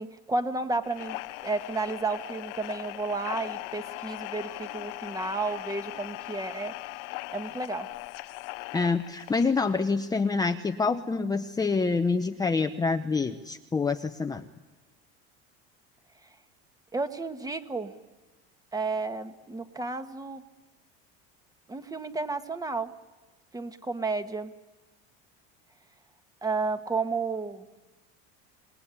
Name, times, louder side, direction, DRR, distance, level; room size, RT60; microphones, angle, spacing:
voice 1, 0.0-6.7 7.3-7.9 16.9-18.0 18.7-20.4 21.7-22.9 23.5-24.5 26.4-27.7, right 3 dB, 10° right, 8 dB, 1.6 m, -32 dB
sound 1, 0.8-9.8, left 21 dB, 75° left, 0.9 m, -39 dB
voice 2, 8.7-14.4, left 4 dB, 10° left, 6 dB, 0.9 m, -26 dB
27.0 x 20.0 x 9.8 m, 1.2 s
cardioid pair, 135°, 30 cm